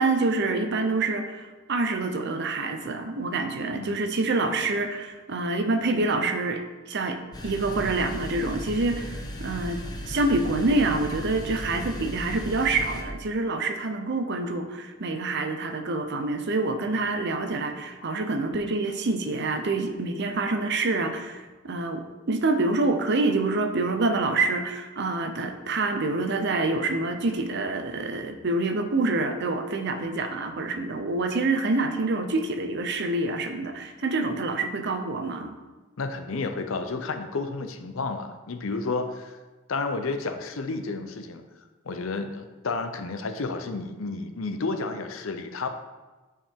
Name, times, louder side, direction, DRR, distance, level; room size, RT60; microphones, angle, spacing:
voice 1, 0.0-7.2 7.4-35.6, right 3 dB, 55° right, 6 dB, 0.7 m, -27 dB
sound 1, 7.3-13.0, equal, 20° left, 0.8 m, -36 dB
voice 2, 36.0-39.4 39.7-41.5 41.8-45.7, left 3 dB, 70° left, 7 dB, 0.6 m, -31 dB
8.6 x 4.8 x 3.6 m, 1.2 s
head